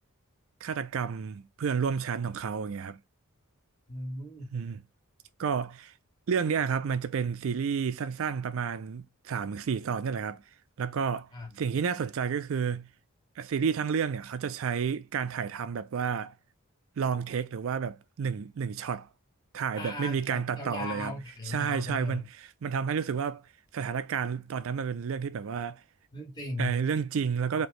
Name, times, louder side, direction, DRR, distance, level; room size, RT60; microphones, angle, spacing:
voice 1, 0.6-3.0 4.5-4.8 5.4-5.9 6.3-10.4 10.8-11.3 11.6-12.9 13.4-16.3 17.0-19.1 19.5-21.2 21.4-23.5 23.7-25.8 26.6-27.7, right 6 dB, 65° right, 0.4 m, -31 dB
voice 2, 3.9-4.5 11.3-11.5 19.8-22.2 26.1-26.8, left 2 dB, 20° left, 2.0 m, -37 dB
4.4 x 2.9 x 3.0 m
head